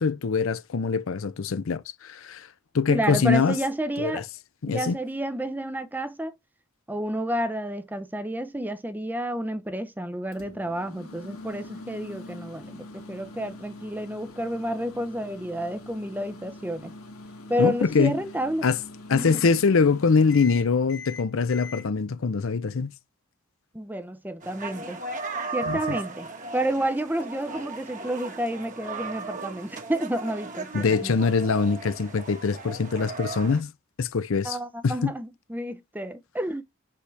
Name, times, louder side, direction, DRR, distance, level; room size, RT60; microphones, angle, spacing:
voice 1, 0.0-2.5 2.7-3.6 4.0-4.2 4.6-5.0 17.6-18.1 18.6-18.8 19.1-22.9 25.7-26.0 30.7-33.7 34.0-34.6 34.8-35.1, left 5 dB, 65° left, 0.5 m, -23 dB
voice 2, 2.9-4.2 4.7-6.3 6.9-16.9 17.5-18.6 19.1-19.4 23.7-25.0 25.5-26.3 26.5-31.3 34.4-36.6, right 1 dB, 10° right, 0.6 m, -30 dB
Microwave oven, 10.3-21.8, left 2 dB, 80° left, 1.9 m, -44 dB
sound 1, 24.4-33.6, right 4 dB, 35° right, 1.3 m, -36 dB
6.4 x 5.6 x 3.2 m
head